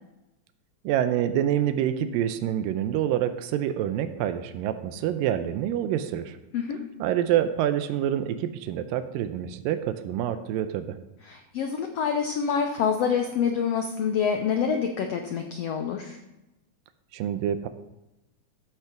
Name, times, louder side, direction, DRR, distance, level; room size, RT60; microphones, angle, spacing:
voice 1, 0.8-6.4 7.0-11.0 17.1-17.7, right 10 dB, 85° right, 9 dB, 2.4 m, -27 dB
voice 2, 11.2-16.2, left 7 dB, 85° left, 5 dB, 1.4 m, -26 dB
14.0 x 5.8 x 5.8 m, 0.96 s
omnidirectional pair, 4.0 m